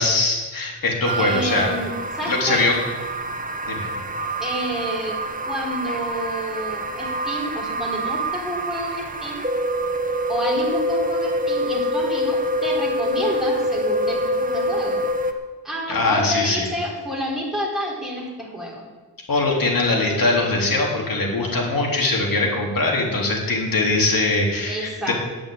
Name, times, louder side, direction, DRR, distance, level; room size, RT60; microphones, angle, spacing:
voice 1, 0.0-1.7 2.2-2.7 3.7-3.9 15.9-16.6 19.3-25.1, left 2 dB, 65° left, -1 dB, 3.4 m, -21 dB
sound 1, 1.0-15.3, equal, 20° right, 1.1 m, -26 dB
voice 2, 1.1-2.6 4.4-5.2 5.4-9.4 10.3-15.0 15.6-18.9 24.7-25.1, equal, ahead, -4 dB, 3.6 m, -29 dB
10.0 x 8.6 x 8.8 m, 1.3 s
wide cardioid pair, 100°, 37 cm